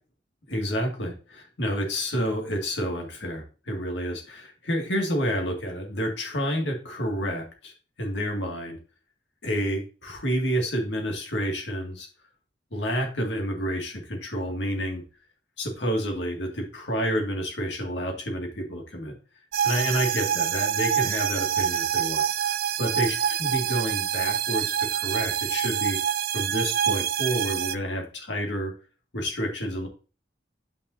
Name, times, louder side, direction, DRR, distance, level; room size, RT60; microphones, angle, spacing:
voice 1, 0.5-7.7 8.0-8.8 9.4-12.1 12.7-15.0 15.6-19.1 19.6-26.0 26.3-28.7 29.1-29.9, equal, 75° left, 2 dB, 2.0 m, -29 dB
sound 1, 19.5-27.8, right 9 dB, 55° right, 0.4 m, -26 dB
9.3 x 5.2 x 2.7 m, 0.35 s
head